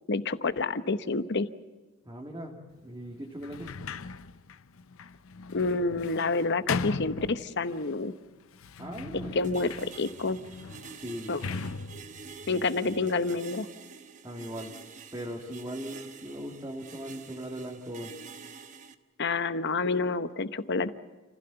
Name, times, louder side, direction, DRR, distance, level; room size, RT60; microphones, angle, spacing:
voice 1, 0.1-1.5 5.5-8.1 9.3-10.4 11.3-11.4 12.5-13.7 19.2-20.9, left 3 dB, 60° left, 12 dB, 0.9 m, -28 dB
voice 2, 2.0-3.7 8.8-9.4 10.9-11.4 14.2-14.7 15.1-18.1, equal, 20° right, -2 dB, 2.1 m, -39 dB
Sliding door, 3.4-7.9 8.5-13.4, left 4 dB, 90° left, 0.6 m, -39 dB
sound 1, 9.4-18.9, right 5 dB, 40° right, 1.1 m, -48 dB
29.0 x 15.5 x 6.9 m, 1.4 s
head